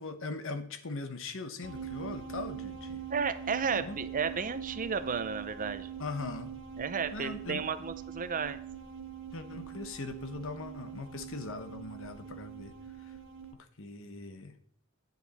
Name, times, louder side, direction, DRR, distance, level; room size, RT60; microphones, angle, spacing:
voice 1, 0.0-3.0 3.7-4.0 6.0-6.5 7.1-7.7 9.3-13.2 13.8-14.6, left 3 dB, 60° left, 9 dB, 1.0 m, -40 dB
sound 1, 1.6-13.5, right 8 dB, 60° right, 1.5 m, -43 dB
voice 2, 3.1-5.9 6.8-8.6, right 5 dB, 35° right, 12 dB, 0.6 m, -33 dB
9.8 x 7.2 x 4.2 m, 0.66 s
head